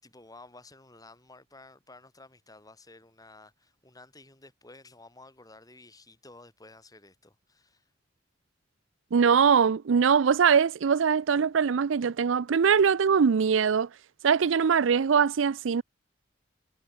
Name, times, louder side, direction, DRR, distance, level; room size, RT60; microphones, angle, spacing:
voice 1, 0.0-7.9, left 2 dB, 20° left, 4.5 m, -53 dB
voice 2, 9.1-13.9 14.2-15.8, right 6 dB, 80° right, 0.5 m, -22 dB
head